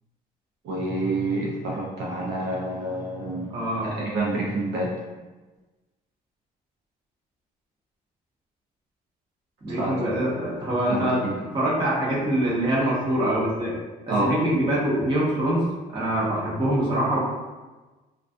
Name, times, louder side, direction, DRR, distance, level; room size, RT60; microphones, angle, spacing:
voice 1, 0.6-3.5 3.8-4.9 9.7-9.9 10.9-11.1 14.1-14.3, right 2 dB, 75° right, -4 dB, 0.7 m, -27 dB
voice 2, 3.5-3.9 9.6-11.2 11.5-13.8 14.2-17.2, right 1 dB, 30° right, -6 dB, 0.9 m, -24 dB
2.3 x 2.3 x 2.5 m, 1.2 s
cardioid pair, 110°, 17 cm